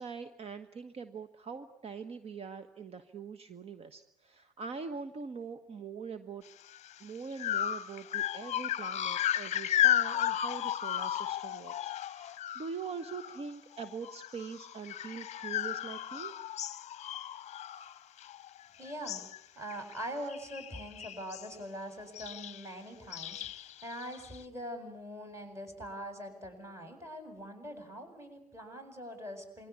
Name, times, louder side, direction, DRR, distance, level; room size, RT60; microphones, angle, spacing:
voice 1, 0.0-6.4 7.0-16.3, right 5 dB, 30° right, 10 dB, 1.3 m, -43 dB
sound 1, 6.7-6.9 7.4-13.5 13.8-18.6 18.8-19.4 19.7-20.0 20.2-21.5 22.1-22.6 23.1-24.4, left 11 dB, 40° left, 1.0 m, -34 dB
voice 2, 18.8-19.2 19.6-29.7, equal, 15° right, 7 dB, 8.0 m, -43 dB
27.5 x 22.5 x 8.5 m, 0.73 s
figure-of-eight pair, 65°, 19 cm